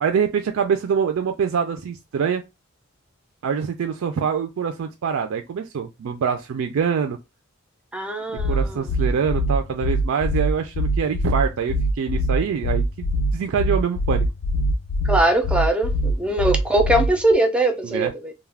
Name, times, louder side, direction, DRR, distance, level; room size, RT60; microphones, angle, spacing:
voice 1, 0.0-2.4 3.4-7.2 8.5-14.3 17.8-18.1, right 6 dB, 70° right, 0.3 m, -24 dB
voice 2, 7.9-8.9 15.0-18.3, right 1 dB, 5° right, 0.4 m, -21 dB
sound 1, 8.4-17.3, right 1 dB, 75° left, 0.3 m, -22 dB
2.3 x 2.1 x 3.2 m
head